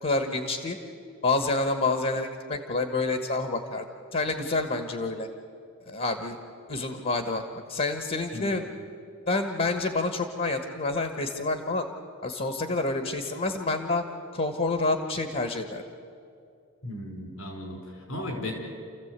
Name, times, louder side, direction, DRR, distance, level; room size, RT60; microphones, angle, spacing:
voice 1, 0.0-0.8 1.2-3.8 4.1-5.3 5.9-6.4 6.7-8.6 9.3-11.9 12.2-14.0 14.3-15.8, left 3 dB, 45° left, 6 dB, 1.4 m, -28 dB
voice 2, 8.3-8.6 16.8-18.5, left 1 dB, 75° left, 3 dB, 5.4 m, -36 dB
28.5 x 15.0 x 8.3 m, 2.4 s
head